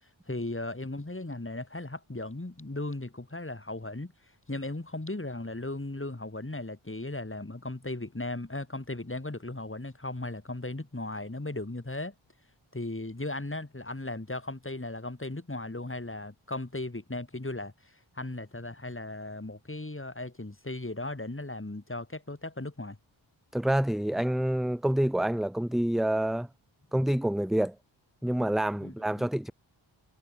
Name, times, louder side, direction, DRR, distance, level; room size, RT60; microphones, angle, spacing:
voice 1, 0.3-4.1 4.5-12.1 12.7-23.0 28.8-29.3, left 2 dB, 25° left, 7.1 m, -37 dB
voice 2, 23.5-26.5 26.9-27.7 28.2-29.5, right 1 dB, ahead, 0.6 m, -27 dB
cardioid pair, 45°, 49 cm